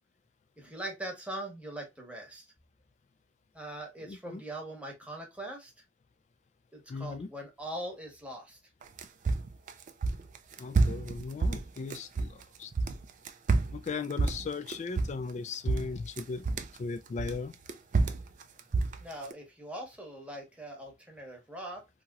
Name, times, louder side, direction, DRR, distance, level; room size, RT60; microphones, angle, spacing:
voice 1, 0.6-2.5 3.5-5.7 6.7-8.6 19.0-21.8, right 1 dB, 5° right, 0.9 m, -41 dB
voice 2, 4.0-4.4 6.9-7.3 10.6-12.7 13.7-16.5 16.8-17.5, left 4 dB, 40° left, 0.3 m, -37 dB
sound 1, 8.8-12.4 12.7-15.4 15.7-16.8 17.2-19.3, right 3 dB, 45° right, 0.4 m, -29 dB
2.9 x 2.9 x 2.3 m
head